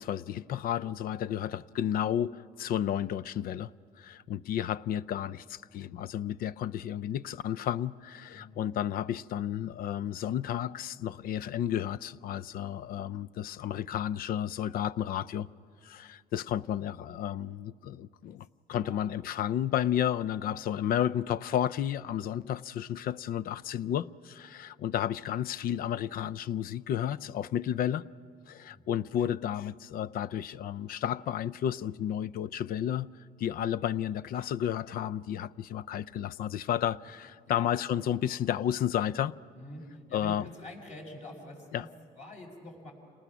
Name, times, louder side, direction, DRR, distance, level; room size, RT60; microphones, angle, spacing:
voice 1, 0.0-3.7 4.0-15.5 15.8-28.0 28.5-33.1 33.4-39.3 40.1-40.5 41.7-41.9, left 10 dB, 60° left, 0.5 m, -32 dB
voice 2, 39.5-42.9, left 1 dB, 45° left, 5.6 m, -46 dB
28.5 x 19.5 x 6.1 m
cardioid pair, 110°, 17 cm